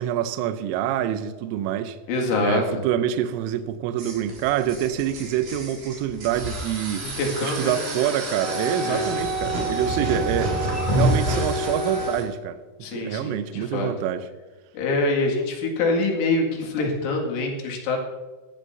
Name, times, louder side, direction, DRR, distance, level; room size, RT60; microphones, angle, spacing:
voice 1, 0.0-2.0 2.4-7.1 7.4-10.6 10.9-12.6 12.9-14.3, right 10 dB, 80° right, 10 dB, 3.1 m, -26 dB
voice 2, 2.1-2.6 7.0-7.8 8.8-9.1 10.0-10.2 12.8-13.9 14.7-18.0, left 2 dB, 75° left, 0 dB, 4.5 m, -25 dB
sound 1, 4.0-12.2, right 1 dB, 50° right, 5.3 m, -32 dB
sound 2, 8.0-8.8 10.3-11.5, equal, 55° left, 0.5 m, -26 dB
Wind instrument woodwind instrument, 8.4-12.2, right 1 dB, 30° left, 3.1 m, -29 dB
17.5 x 14.0 x 2.7 m, 1.3 s
omnidirectional pair, 5.8 m